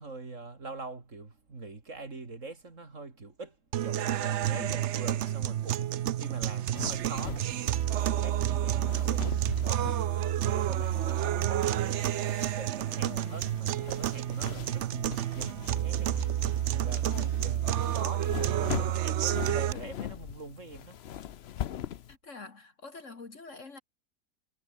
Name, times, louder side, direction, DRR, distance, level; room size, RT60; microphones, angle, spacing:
voice 1, 0.0-12.1 12.5-21.0, right 3 dB, 40° right, 3.1 m, -44 dB
sound 1, 3.7-19.7, right 12 dB, 80° right, 0.6 m, -29 dB
sound 2, 6.7-22.2, left 10 dB, 80° left, 0.5 m, -42 dB
voice 2, 13.0-13.4 17.0-17.4 21.8-23.8, left 4 dB, 45° left, 2.1 m, -46 dB
omnidirectional pair, 1.9 m